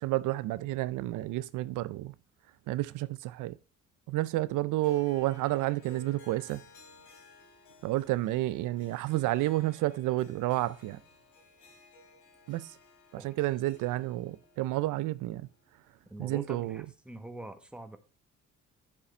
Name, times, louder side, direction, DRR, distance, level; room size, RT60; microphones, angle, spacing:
voice 1, 0.0-2.1 2.7-3.6 4.1-6.6 7.8-11.0 12.5-12.7 13.1-15.4 16.2-16.8, right 17 dB, 85° right, 0.5 m, -30 dB
Harp, 4.8-16.1, left 1 dB, 80° left, 3.0 m, -56 dB
voice 2, 16.1-18.0, right 1 dB, 5° right, 1.2 m, -44 dB
8.3 x 7.1 x 4.3 m
cardioid pair, 90°, 30 cm